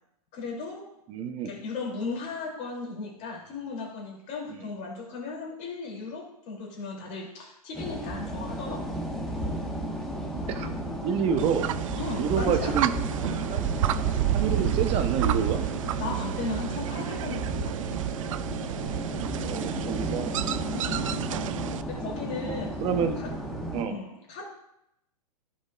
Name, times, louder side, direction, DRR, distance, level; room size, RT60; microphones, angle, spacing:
voice 1, 0.3-0.9 1.4-9.0 12.0-12.8 16.0-18.0 19.2-19.4 20.7-21.4 21.9-22.8 23.2-23.3 23.9-24.5, left 4 dB, 35° left, -2 dB, 3.1 m, -36 dB
voice 2, 1.1-1.6 4.5-4.6 10.5-10.7 11.0-11.7 12.2-12.9 13.5-13.6 14.3-15.6 19.4-20.5 22.8-23.2 23.7-24.0, right 7 dB, 30° right, 7 dB, 0.9 m, -28 dB
sound 1, 7.7-23.9, equal, ahead, 1.4 m, -34 dB
sound 2, 11.4-21.8, right 12 dB, 55° right, 0.4 m, -30 dB
14.5 x 5.2 x 2.5 m, 0.81 s
figure-of-eight pair, 110°, 20 cm